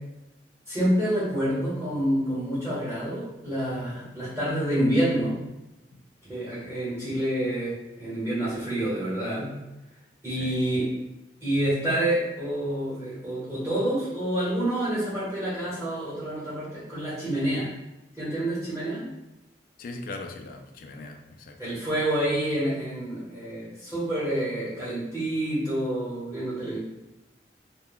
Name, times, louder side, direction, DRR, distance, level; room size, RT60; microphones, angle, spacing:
voice 1, 0.7-5.4 6.3-9.5 10.2-10.8 11.4-17.7 18.2-19.0 21.6-26.8, right 1 dB, 15° right, -10 dB, 1.1 m, -28 dB
voice 2, 10.3-10.6 19.8-21.7, left 2 dB, 50° left, 4 dB, 0.3 m, -40 dB
2.3 x 2.2 x 3.5 m, 0.97 s
head